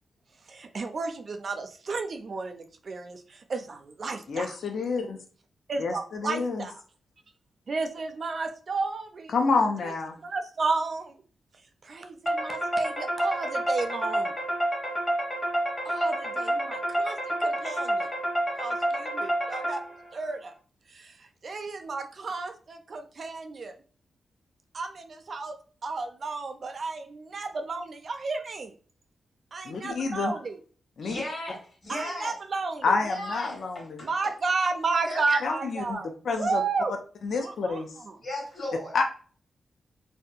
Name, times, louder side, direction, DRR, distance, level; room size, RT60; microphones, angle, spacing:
voice 1, 0.5-4.6 5.7-6.8 7.7-9.4 9.8-9.9 10.2-11.2 11.8-14.3 15.8-18.1 18.5-19.8 20.1-20.5 20.9-23.7 24.7-25.6 25.8-28.7 29.5-30.6 31.9-33.0 34.0-36.1 36.4-37.0 37.4-38.2, right 4 dB, 45° right, 6 dB, 0.4 m, -32 dB
voice 2, 4.3-5.2 5.8-6.6 9.3-10.2 29.6-30.3 31.0-31.2 32.8-34.0 35.4-36.6 37.2-37.9 38.9-39.0, left 4 dB, 65° left, 4 dB, 0.4 m, -28 dB
sound 1, 12.3-20.1, right 1 dB, 25° left, 0.7 m, -29 dB
voice 3, 31.0-32.3 33.0-34.1 35.1-35.2 38.2-38.9, left 1 dB, 50° left, -1 dB, 1.3 m, -35 dB
2.7 x 2.1 x 2.3 m, 0.40 s
wide cardioid pair, 125°, 0 cm